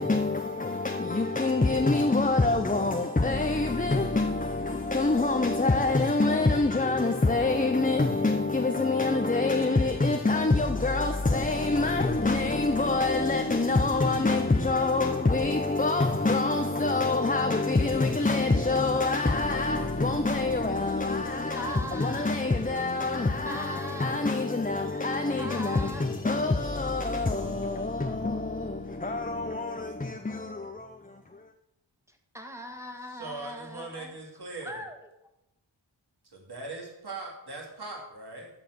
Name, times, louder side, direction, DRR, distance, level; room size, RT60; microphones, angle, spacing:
voice 1, 0.0-31.5, left 3 dB, 20° left, 0.7 m, -26 dB
voice 2, 20.8-22.3 23.5-24.2 25.4-26.1 26.8-27.9 32.1-34.2 34.6-35.1, equal, 5° right, 1.8 m, -42 dB
voice 3, 33.2-34.8 36.3-38.5, right 2 dB, 55° right, 2.9 m, -40 dB
14.0 x 4.9 x 6.1 m
cardioid pair, 45°, 45 cm